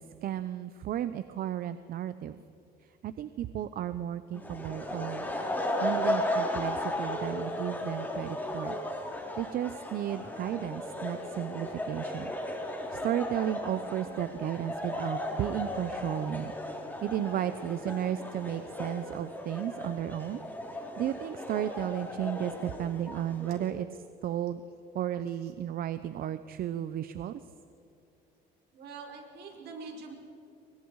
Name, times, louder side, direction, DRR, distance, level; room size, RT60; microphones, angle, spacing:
voice 1, 0.0-2.4 3.0-5.3 5.8-8.8 9.4-12.3 12.9-16.5 17.0-20.4 21.0-23.9 24.2-24.6 24.9-27.4, right 11 dB, 60° right, 12 dB, 0.8 m, -34 dB
sound 1, 4.3-23.7, left 1 dB, 10° left, 3.9 m, -35 dB
voice 2, 28.7-30.1, right 4 dB, 75° right, 2 dB, 5.1 m, -45 dB
29.0 x 23.5 x 4.8 m, 2.7 s
cardioid pair, 110°, 17 cm